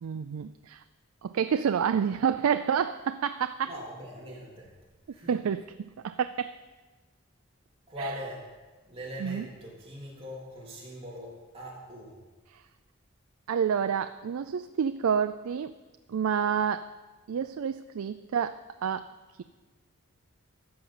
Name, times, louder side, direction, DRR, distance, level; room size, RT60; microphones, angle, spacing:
voice 1, 0.0-0.8 1.2-3.7 5.3-5.6 6.0-6.5 8.0-8.1 9.2-9.5 12.5-12.6 13.5-15.7 16.1-16.9 17.3-19.1, right 7 dB, 90° right, 10 dB, 0.4 m, -28 dB
voice 2, 3.6-4.7 5.1-5.3 7.9-8.5 8.9-12.2, equal, 25° right, -5 dB, 3.3 m, -41 dB
14.0 x 5.4 x 7.3 m, 1.3 s
head